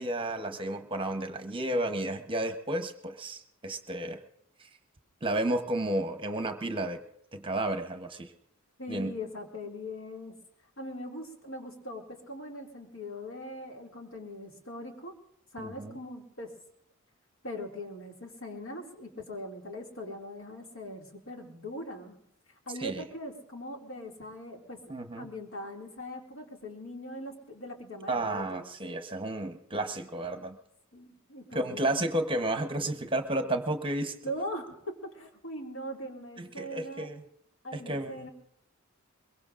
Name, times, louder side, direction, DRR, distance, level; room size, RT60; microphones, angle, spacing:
voice 1, 0.0-4.2 4.6-4.7 5.2-7.0 7.3-8.3 8.9-9.1 15.6-16.0 22.8-23.0 24.9-25.3 28.1-30.6 31.5-34.1 36.4-37.2 37.7-38.3, right 1 dB, 25° right, 7 dB, 0.9 m, -32 dB
voice 2, 8.8-10.4 10.8-15.1 15.5-16.5 17.4-22.2 22.7-24.8 25.2-28.7 30.9-32.0 34.2-37.1 37.6-38.3, left 1 dB, 65° left, 1 dB, 2.4 m, -41 dB
23.0 x 22.5 x 2.5 m, 0.76 s
head